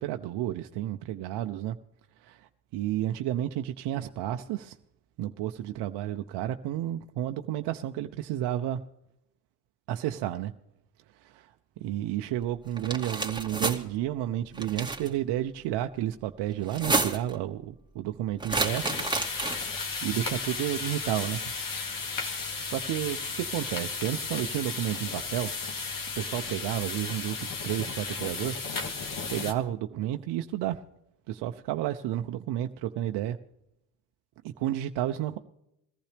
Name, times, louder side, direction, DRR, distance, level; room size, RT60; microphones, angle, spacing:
voice 1, 0.0-1.8 2.2-4.8 5.2-8.8 9.9-10.5 11.2-11.5 11.8-18.9 20.0-21.4 22.2-25.5 26.2-29.0 29.3-30.8 31.3-33.4 34.4-35.4, right 12 dB, 70° right, 7 dB, 0.8 m, -31 dB
sound 1, 12.8-13.8 14.6-15.1 16.6-17.3 18.4-19.8, right 3 dB, 10° right, 2.5 m, -29 dB
sound 2, 18.5-29.5, left 4 dB, 50° left, 2.3 m, -34 dB
21.5 x 14.5 x 3.4 m, 0.82 s
supercardioid pair, 70°, 43 cm